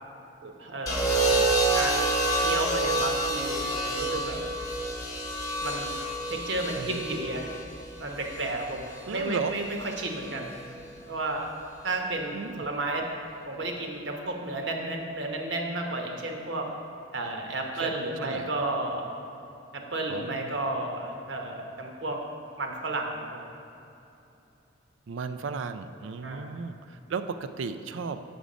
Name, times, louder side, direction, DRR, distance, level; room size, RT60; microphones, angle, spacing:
voice 1, 0.4-1.1 1.7-4.4 5.6-5.9 6.3-7.5 8.0-10.6 11.1-11.5 11.8-13.1 13.5-16.7 17.1-19.1 19.7-22.2 22.6-23.4 26.2-26.5, right 2 dB, 70° right, 2 dB, 1.0 m, -32 dB
sound 1, 0.9-9.0 10.2-10.6, right 2 dB, 20° left, 0.9 m, -28 dB
voice 2, 9.0-9.6 12.3-12.6 17.8-18.5 20.1-20.5 25.1-28.2, right 5 dB, 85° right, 11 dB, 0.4 m, -35 dB
6.9 x 6.2 x 5.1 m, 2.8 s
head